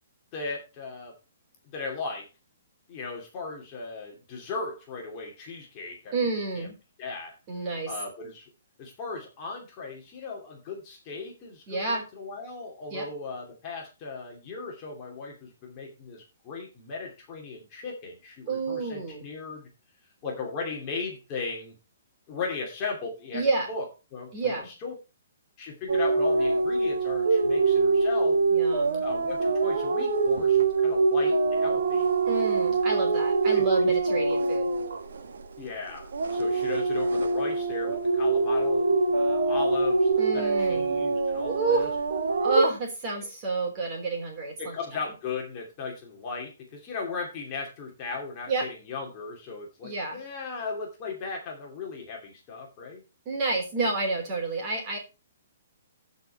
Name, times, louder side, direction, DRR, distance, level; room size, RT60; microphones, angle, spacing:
voice 1, 0.3-1.1 1.6-2.3 2.9-6.3 6.5-6.7 7.0-7.3 7.9-8.5 8.8-19.7 20.2-21.7 22.3-23.8 24.1-24.9 25.6-28.4 29.0-32.1 32.9-33.2 33.5-34.0 35.6-41.9 43.2-43.3 44.6-53.0, left 4 dB, 20° left, -1 dB, 2.6 m, -37 dB
voice 2, 6.1-6.8 7.5-7.9 11.7-12.0 12.9-13.1 18.5-19.2 23.3-23.7 24.3-24.7 28.5-29.0 32.3-34.7 40.2-40.9 41.4-41.9 42.4-45.0 48.5-48.7 49.8-50.2 53.2-55.0, right 3 dB, 20° right, 1 dB, 3.5 m, -29 dB
sound 1, 25.9-35.7 36.0-42.6, right 3 dB, 75° right, 1.8 m, -24 dB
15.0 x 5.3 x 4.3 m, 0.29 s
hypercardioid pair, 175°, 0 cm